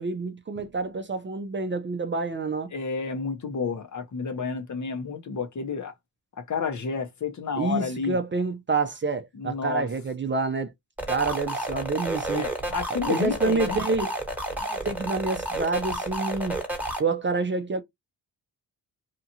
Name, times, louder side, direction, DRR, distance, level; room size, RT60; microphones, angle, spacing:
voice 1, 0.0-2.7 7.6-10.7 11.1-12.5 13.1-14.2 14.7-16.6 17.0-17.8, right 4 dB, 30° right, 0.5 m, -28 dB
voice 2, 2.7-5.9 6.4-8.2 9.3-9.9 12.3-13.8, left 5 dB, 45° left, 0.8 m, -30 dB
sound 1, 11.0-17.0, right 1 dB, 5° right, 1.2 m, -31 dB
2.9 x 2.4 x 2.7 m
cardioid pair, 70°, 41 cm